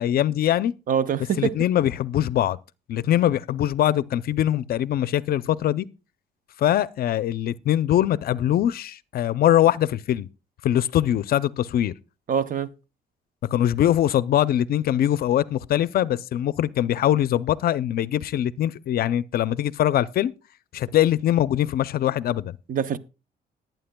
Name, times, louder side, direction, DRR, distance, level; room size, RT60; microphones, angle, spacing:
voice 1, 0.0-0.7 1.4-2.6 2.9-5.9 6.6-10.3 10.6-11.9 13.5-20.3 20.7-22.6, left 12 dB, 60° left, 0.5 m, -22 dB
voice 2, 0.9-1.5 12.3-12.7 22.7-23.0, right 8 dB, 50° right, 0.7 m, -24 dB
19.0 x 9.2 x 2.2 m
cardioid pair, 125°, 17 cm